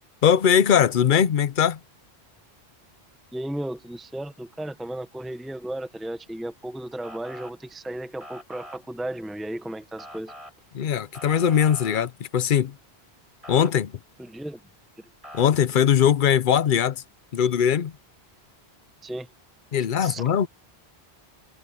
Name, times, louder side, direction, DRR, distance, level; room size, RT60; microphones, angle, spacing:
voice 1, 0.2-1.8 10.7-12.7 13.5-13.9 15.3-17.0 17.3-17.9 19.7-20.5, left 8 dB, 55° left, 0.8 m, -20 dB
voice 2, 3.3-10.3 14.2-14.6 19.0-19.3 20.0-20.2, right 1 dB, ahead, 1.0 m, -34 dB
Motor vehicle (road) / Siren, 7.0-7.5 8.2-8.8 10.0-10.5 11.1-12.1 13.4-13.7 15.2-15.4, equal, 30° right, 5.4 m, -42 dB
omnidirectional pair, 1.1 m